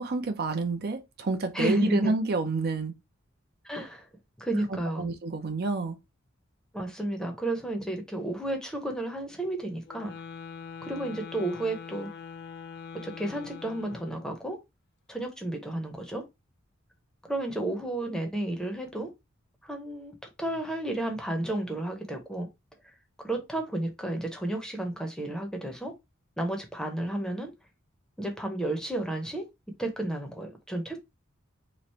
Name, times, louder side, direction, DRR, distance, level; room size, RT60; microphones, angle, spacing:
voice 1, 0.0-2.9 5.0-6.0, right 3 dB, 50° right, 0.6 m, -29 dB
voice 2, 1.5-2.1 3.6-4.1 4.4-5.1 6.7-10.1 10.8-12.1 13.0-14.6 15.1-16.2 17.3-19.1 19.6-22.5 23.2-25.9 26.4-27.5 28.2-29.4 29.8-31.0, right 1 dB, 5° left, 0.7 m, -32 dB
sound 1, 9.8-14.4, left 6 dB, 55° left, 0.5 m, -43 dB
3.1 x 2.5 x 4.2 m
head